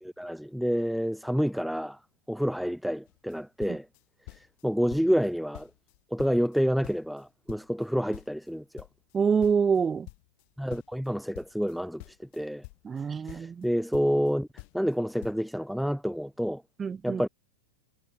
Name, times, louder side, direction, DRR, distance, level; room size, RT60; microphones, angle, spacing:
voice 1, 0.0-2.0 2.3-3.9 4.3-5.7 6.1-8.9 10.6-12.6 13.2-14.5 14.7-16.6 17.0-17.3, equal, ahead, 1.0 m, -28 dB
sound 1, 3.1-3.4 3.6-4.6 4.9-5.3 5.5-7.2 7.5-10.4 10.7-13.0 13.3-14.3 14.6-15.0 15.2-15.4, left 36 dB, 45° left, 2.3 m, -48 dB
voice 2, 9.1-10.1 12.8-13.6 16.8-17.2, right 6 dB, 20° right, 0.3 m, -26 dB
figure-of-eight pair, 90°, 0 cm